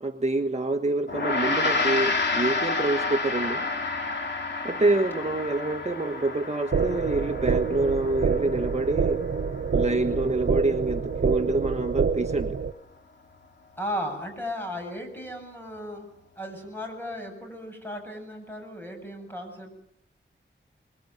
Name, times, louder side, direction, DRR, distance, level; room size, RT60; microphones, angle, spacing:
voice 1, 0.0-3.7 4.6-9.2 9.7-12.6, right 2 dB, 35° right, 4 dB, 1.4 m, -26 dB
Gong, 1.1-10.6, left 3 dB, 60° left, 3.4 m, -30 dB
sound 1, 6.7-12.7, right 5 dB, 75° right, 0.9 m, -27 dB
voice 2, 13.8-16.1 16.4-19.7, equal, 10° left, 3 dB, 7.9 m, -35 dB
25.0 x 21.5 x 9.4 m, 0.74 s
wide cardioid pair, 100°, 20 cm